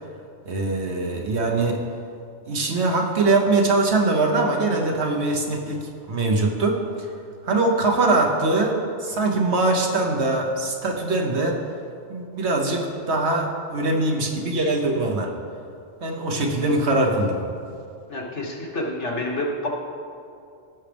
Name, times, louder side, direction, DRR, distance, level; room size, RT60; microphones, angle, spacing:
voice 1, 0.4-1.8 2.5-6.8 7.5-11.6 12.1-15.3 16.0-17.4, right 2 dB, 70° right, 1 dB, 1.4 m, -22 dB
voice 2, 18.1-19.7, left 1 dB, 85° left, -3 dB, 1.9 m, -28 dB
16.0 x 6.3 x 3.5 m, 2.5 s
omnidirectional pair, 1.2 m